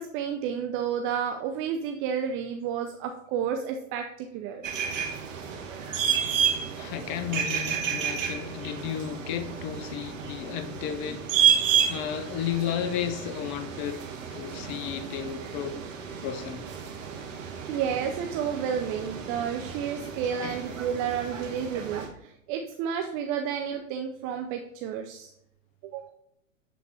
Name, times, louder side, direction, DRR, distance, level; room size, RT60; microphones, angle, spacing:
voice 1, 0.0-4.7 17.7-25.3 25.8-26.0, right 8 dB, 35° right, 0.6 m, -31 dB
sound 1, 4.6-22.1, right 8 dB, 70° right, 1.5 m, -31 dB
voice 2, 6.8-11.3 11.9-14.0 14.3-15.8 16.2-16.7 20.0-20.6, left 9 dB, 25° left, 0.4 m, -33 dB
8.2 x 4.1 x 4.3 m
hypercardioid pair, 110°, 39 cm